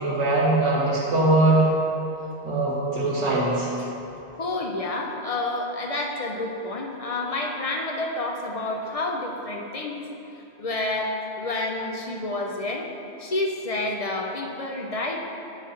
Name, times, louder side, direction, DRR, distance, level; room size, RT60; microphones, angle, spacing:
voice 1, 0.0-1.7 2.4-3.7, right 2 dB, 90° right, -7 dB, 1.3 m, -21 dB
voice 2, 4.4-10.0 10.6-12.9 13.2-15.2, left 2 dB, 45° left, 0 dB, 0.5 m, -29 dB
8.9 x 3.2 x 5.5 m, 3.0 s
omnidirectional pair, 1.2 m